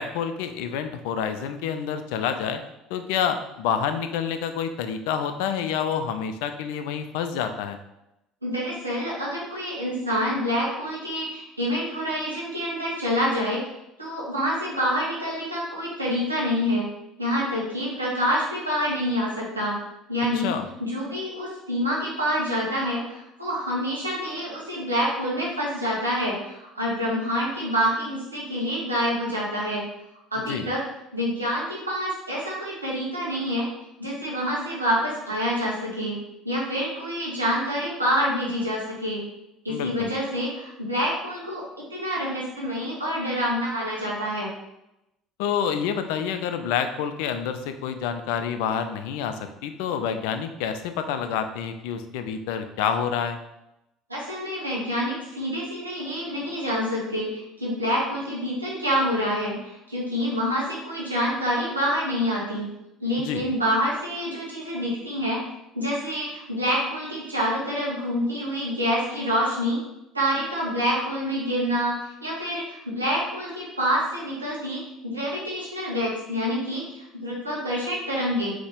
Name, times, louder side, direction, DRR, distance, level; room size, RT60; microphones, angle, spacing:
voice 1, 0.0-2.6 2.9-7.8 20.3-20.7 30.5-30.7 39.7-40.1 45.4-53.4 63.2-63.4, left 7 dB, 65° left, 8 dB, 0.4 m, -28 dB
voice 2, 8.4-13.6 14.0-16.9 17.2-19.8 20.1-20.5 20.8-29.8 30.3-30.8 31.1-33.7 34.0-36.2 36.4-39.2 39.6-44.5 54.1-62.7 63.0-65.4 65.7-69.8 70.1-78.5, equal, 90° right, -5 dB, 1.1 m, -27 dB
3.9 x 2.9 x 3.6 m, 0.89 s
figure-of-eight pair, 60°, 0 cm